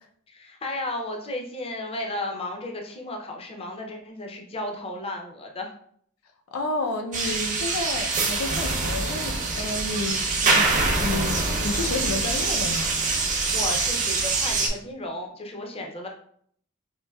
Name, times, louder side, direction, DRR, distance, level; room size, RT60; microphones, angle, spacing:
voice 1, 0.3-5.7 13.5-16.1, left 1 dB, 25° left, 2 dB, 0.5 m, -34 dB
voice 2, 6.5-10.7 11.0-12.9, left 2 dB, 90° left, 4 dB, 0.5 m, -31 dB
sound 1, 7.1-14.7, right 3 dB, 35° right, 0.6 m, -24 dB
4.4 x 2.6 x 2.2 m, 0.63 s
head